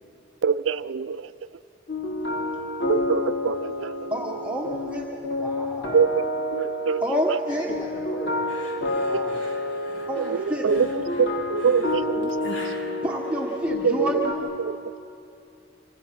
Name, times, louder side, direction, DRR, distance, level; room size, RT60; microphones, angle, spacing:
voice 1, 0.4-1.3 2.9-3.9 5.9-6.2 6.5-7.0 10.2-10.9 11.2-12.3 13.8-13.9 14.6-14.8, right 6 dB, 90° right, 14 dB, 0.5 m, -24 dB
sound 1, 1.9-14.3, left 1 dB, 70° left, 3.4 m, -29 dB
voice 2, 4.1-5.1 7.0-7.7 10.1-10.7 13.0-14.4, equal, 10° right, -2 dB, 1.3 m, -28 dB
voice 3, 5.4-6.0 7.5-8.4 9.0-9.4, equal, 20° left, -5 dB, 5.5 m, -38 dB
sound 2, 8.5-14.0, left 1 dB, 85° left, 3.7 m, -43 dB
27.0 x 25.5 x 5.9 m, 2.8 s
head